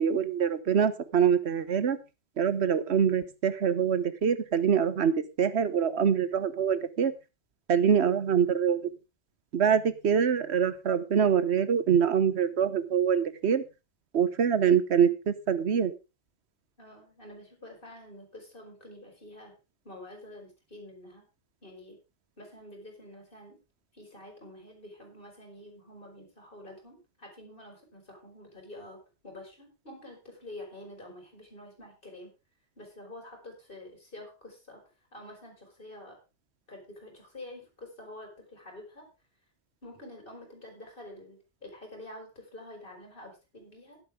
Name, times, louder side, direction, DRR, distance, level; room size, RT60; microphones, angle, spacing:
voice 1, 0.0-2.0 2.4-5.1 5.4-7.1 7.7-8.9 9.5-13.6 14.1-15.9, right 7 dB, 75° right, 13 dB, 1.2 m, -25 dB
voice 2, 16.8-19.6 19.8-21.3 21.6-22.0 22.4-23.6 23.9-32.3 32.8-34.8 35.1-36.2 36.7-39.1 39.8-44.0, left 1 dB, 50° left, 1 dB, 5.4 m, -47 dB
12.5 x 11.0 x 3.6 m, 0.29 s
omnidirectional pair, 1.1 m